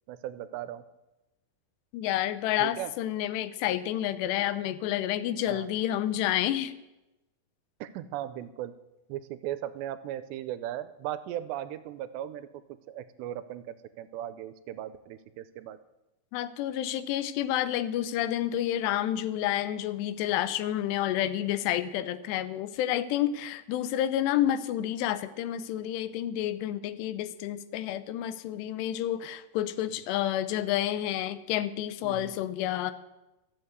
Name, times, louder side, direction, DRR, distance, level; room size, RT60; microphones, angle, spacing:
voice 1, 0.1-0.8 2.6-2.9 5.5-5.7 7.8-8.8 9.1-12.5 12.9-15.8 32.0-32.4, right 12 dB, 90° right, 13 dB, 2.8 m, -37 dB
voice 2, 1.9-6.7 16.3-32.9, left 12 dB, 85° left, 13 dB, 2.8 m, -29 dB
14.0 x 8.2 x 8.0 m, 1.0 s
omnidirectional pair, 4.9 m